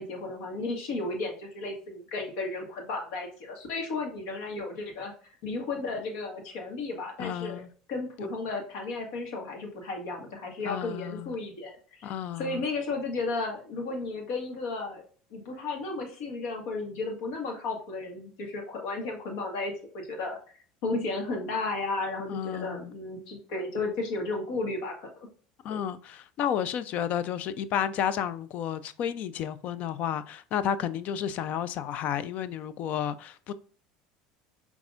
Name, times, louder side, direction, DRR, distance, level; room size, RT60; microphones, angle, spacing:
voice 1, 0.0-5.1 5.4-7.6 7.9-12.1 12.4-20.4 20.8-25.3, left 3 dB, 70° left, 1.7 m, -34 dB
voice 2, 7.2-7.7 10.7-11.3 12.0-12.6 22.3-22.9 25.6-33.5, left 9 dB, 55° left, 0.5 m, -31 dB
6.0 x 3.5 x 2.5 m
supercardioid pair, 105°, 3 cm